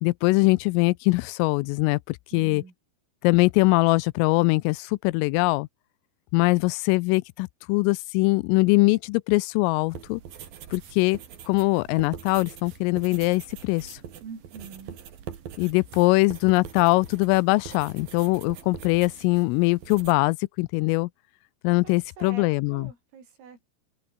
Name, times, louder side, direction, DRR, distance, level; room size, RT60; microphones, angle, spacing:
voice 1, 0.0-2.6 3.2-5.7 6.3-10.2 10.7-11.2 11.5-14.0 15.6-21.1 21.6-22.9, left 24 dB, 85° left, 3.2 m, -22 dB
voice 2, 2.3-2.7 14.2-15.0 21.8-23.7, right 6 dB, 80° right, 8.7 m, -44 dB
sound 1, 9.9-20.1, right 8 dB, 50° right, 3.8 m, -43 dB
open air
omnidirectional pair, 5.8 m